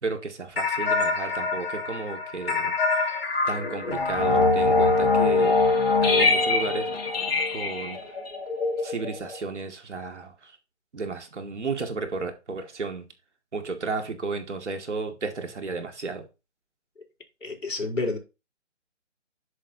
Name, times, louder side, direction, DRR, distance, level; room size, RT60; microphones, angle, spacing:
voice 1, 0.0-2.7 3.5-5.6 6.0-6.9 7.5-8.0 8.8-10.6 10.9-13.1 13.5-16.3, right 4 dB, 65° right, 2.3 m, -33 dB
sound 1, 0.6-9.5, left 3 dB, 50° left, 3.3 m, -24 dB
voice 2, 17.4-18.2, left 3 dB, 85° left, 4.3 m, -29 dB
11.0 x 6.6 x 2.9 m
figure-of-eight pair, 155°, 37 cm